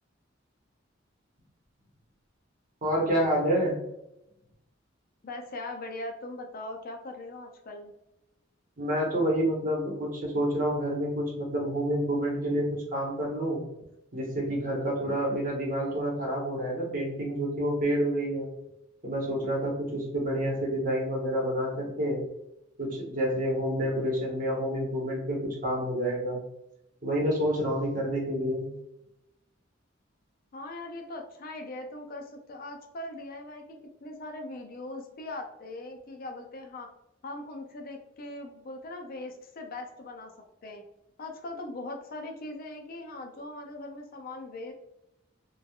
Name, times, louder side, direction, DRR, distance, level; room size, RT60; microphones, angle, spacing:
voice 1, 2.8-3.7 8.8-13.6 14.1-18.5 19.0-22.2 22.8-26.4 27.0-28.7, equal, 45° right, -2 dB, 0.9 m, -28 dB
voice 2, 5.2-7.9 30.5-36.9 37.2-40.3 40.6-40.8 41.2-44.7, left 2 dB, 50° left, 3 dB, 0.4 m, -40 dB
3.2 x 2.2 x 2.3 m, 0.87 s
head